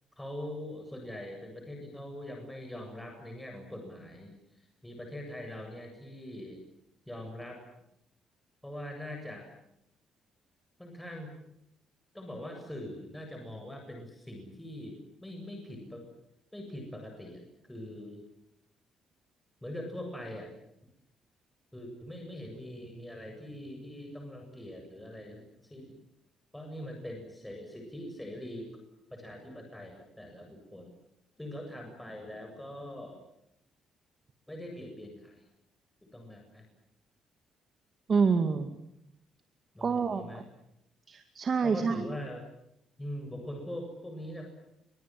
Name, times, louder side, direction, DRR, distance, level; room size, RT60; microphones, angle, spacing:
voice 1, 0.2-6.6 7.1-7.6 8.6-9.5 10.8-11.3 12.1-16.1 16.5-18.3 19.6-20.5 21.7-26.0 26.5-28.8 29.1-30.9 31.4-33.2 34.5-35.4 36.0-36.7 39.7-40.4 41.6-42.4 43.0-44.5, left 1 dB, 10° left, 2 dB, 8.0 m, -42 dB
voice 2, 38.1-38.8 39.8-40.4 41.1-42.0, right 5 dB, 45° right, 7 dB, 2.3 m, -27 dB
29.0 x 25.0 x 7.8 m, 0.81 s
cardioid pair, 90°, 0 cm